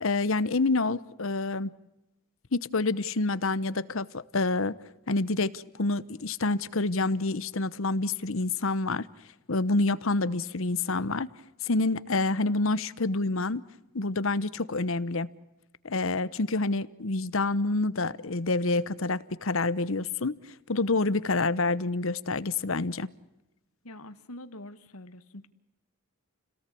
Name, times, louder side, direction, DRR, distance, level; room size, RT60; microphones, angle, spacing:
voice 1, 0.0-1.7 2.5-4.7 5.1-9.1 9.5-11.3 11.6-13.6 13.9-15.3 15.8-23.1, left 3 dB, 65° left, 17 dB, 1.0 m, -27 dB
voice 2, 23.8-25.5, left 1 dB, 85° left, 11 dB, 1.7 m, -45 dB
29.5 x 18.5 x 8.5 m, 0.95 s
head